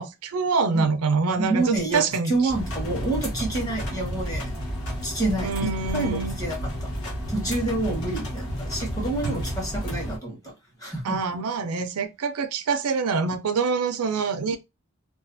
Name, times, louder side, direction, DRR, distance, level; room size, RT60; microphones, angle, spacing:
voice 1, 0.0-2.5 5.4-6.3 9.2-9.4 11.0-14.6, right 4 dB, 80° right, 0.4 m, -25 dB
voice 2, 1.4-4.6 5.0-6.9 7.3-10.4 10.8-11.2, right 2 dB, 15° left, 0.9 m, -28 dB
sound 1, 2.5-10.2, equal, 75° left, 1.1 m, -31 dB
2.4 x 2.3 x 2.5 m
head